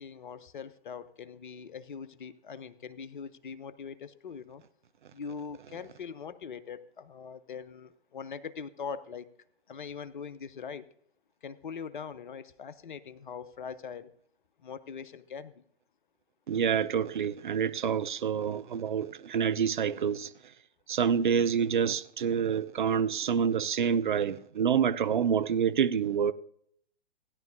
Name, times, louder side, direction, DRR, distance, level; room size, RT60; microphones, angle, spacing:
voice 1, 0.0-4.6 5.1-9.3 9.7-10.9 11.4-14.1 14.6-15.6, left 6 dB, 50° left, 0.7 m, -42 dB
voice 2, 16.5-20.3 20.9-26.3, right 7 dB, 50° right, 0.5 m, -27 dB
16.0 x 10.5 x 2.6 m
figure-of-eight pair, 120°, 31 cm